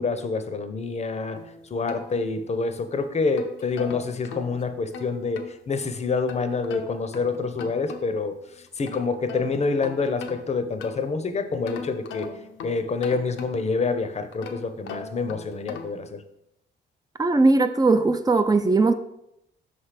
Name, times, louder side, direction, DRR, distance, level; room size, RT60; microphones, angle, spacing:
voice 1, 0.0-1.4 1.7-8.4 8.8-12.3 12.6-16.2, left 4 dB, 35° left, 0.7 m, -27 dB
sound 1, 1.4-2.7 3.2-5.6 6.3-8.3 8.7-11.2 11.7-13.8 14.3-16.1, left 5 dB, 90° left, 0.7 m, -40 dB
voice 2, 17.2-18.9, right 3 dB, 20° right, 0.5 m, -19 dB
5.4 x 3.4 x 5.7 m
cardioid pair, 90°, 20 cm